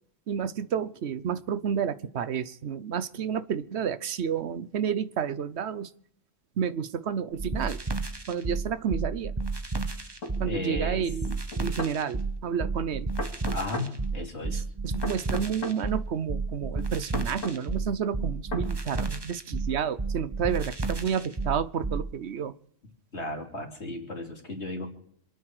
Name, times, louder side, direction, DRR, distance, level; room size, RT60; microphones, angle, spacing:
voice 1, 0.3-5.9 6.6-7.8 8.3-9.3 10.4-13.1 14.5-22.6, right 7 dB, 60° right, 14 dB, 1.0 m, -30 dB
sound 1, 7.4-22.1, right 3 dB, 20° right, 1.1 m, -31 dB
sound 2, 10.2-10.4 11.5-12.0 13.2-13.9 15.0-15.8 17.1-17.6 18.5-18.7, left 2 dB, 90° left, 2.6 m, -35 dB
voice 2, 10.4-11.1 13.5-14.6 23.1-24.9, left 2 dB, 60° left, 1 dB, 3.3 m, -35 dB
27.0 x 9.5 x 4.8 m, 0.66 s
omnidirectional pair, 1.3 m